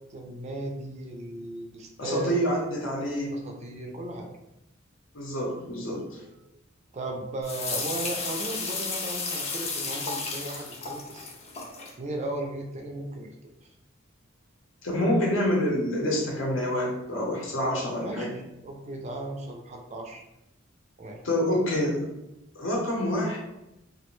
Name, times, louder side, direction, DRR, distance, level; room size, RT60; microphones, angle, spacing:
voice 1, 0.1-2.4 3.3-4.3 6.9-11.3 12.0-13.3 18.0-20.2 21.0-21.2, right 2 dB, 35° right, 2 dB, 0.4 m, -36 dB
voice 2, 2.0-3.4 5.1-6.2 14.8-18.4 21.2-22.1 22.5-23.4, equal, 80° left, -1 dB, 0.7 m, -27 dB
sound 1, 7.4-11.9, left 4 dB, 35° left, 0.4 m, -33 dB
2.5 x 2.1 x 2.9 m, 0.90 s
head